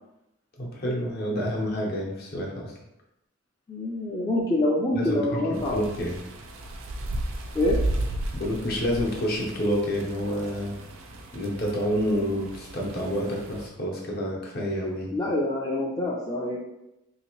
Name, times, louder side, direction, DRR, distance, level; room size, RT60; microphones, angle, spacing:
voice 1, 0.6-2.7 4.9-5.4 5.7-6.2 8.3-10.8 11.3-15.1, equal, 50° left, -2 dB, 0.8 m, -28 dB
voice 2, 3.7-5.8 7.5-7.8 15.1-16.6, left 1 dB, 20° left, -5 dB, 0.4 m, -26 dB
sound 1, 5.5-13.7, right 1 dB, 80° right, 0.4 m, -34 dB
3.4 x 2.8 x 2.9 m, 0.88 s
head